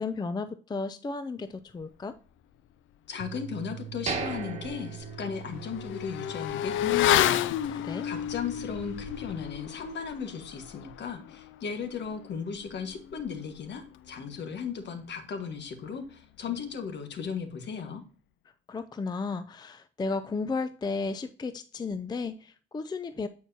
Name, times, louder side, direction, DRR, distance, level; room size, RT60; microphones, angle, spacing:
voice 1, 0.0-2.2 7.7-8.1 18.7-23.3, left 4 dB, 20° left, 0.4 m, -34 dB
voice 2, 3.1-7.8 8.0-18.0, left 6 dB, 60° left, 1.5 m, -36 dB
sound 1, 3.2-9.5, right 11 dB, 60° right, 0.7 m, -45 dB
Motorcycle / Accelerating revving vroom, 3.9-4.0 4.4-14.4 14.7-14.8, left 12 dB, 80° left, 0.5 m, -32 dB
sound 2, 4.1-6.0 6.3-6.4 6.9-7.1, right 4 dB, 35° right, 1.6 m, -36 dB
8.9 x 4.6 x 2.7 m
cardioid pair, 90°, 20 cm